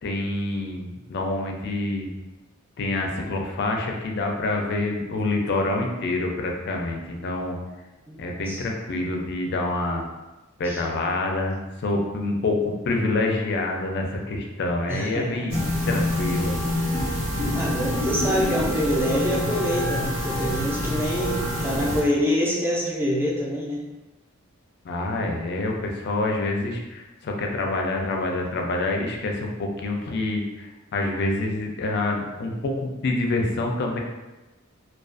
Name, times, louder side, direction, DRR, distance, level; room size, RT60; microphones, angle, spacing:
voice 1, 0.0-2.1 2.8-7.6 8.2-10.1 10.6-16.5 24.8-34.0, left 2 dB, 55° left, 1 dB, 0.4 m, -27 dB
voice 2, 8.1-8.6 10.6-10.8 14.9-15.5 17.5-23.8, left 1 dB, 10° right, -4 dB, 0.4 m, -26 dB
sound 1, 15.5-22.0, equal, 85° right, 1.2 m, -26 dB
2.4 x 2.2 x 2.4 m, 1.1 s
head